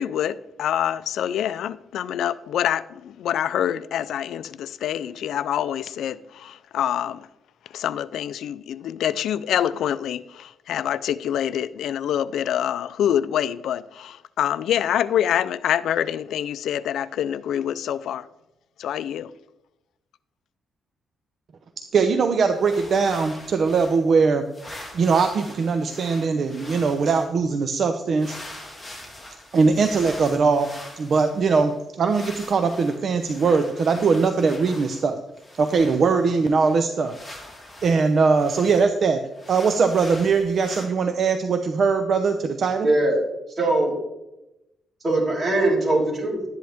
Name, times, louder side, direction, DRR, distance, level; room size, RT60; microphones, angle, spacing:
voice 1, 0.0-7.3 7.7-18.3 18.8-19.3, left 10 dB, 80° left, 0.4 m, -26 dB
voice 2, 21.8-24.4 24.9-28.6 29.5-30.7 31.0-35.2 35.6-37.4 37.8-39.2 39.5-42.9, right 4 dB, 55° right, 0.7 m, -21 dB
sound 1, 22.5-24.2 24.5-27.3 28.2-35.1 35.3-38.9 39.3-40.9, left 1 dB, 10° left, 3.0 m, -43 dB
voice 3, 42.8-43.2 43.6-43.9 45.0-46.4, right 2 dB, 35° right, 4.1 m, -21 dB
12.0 x 10.5 x 3.5 m
cardioid pair, 110°, 0 cm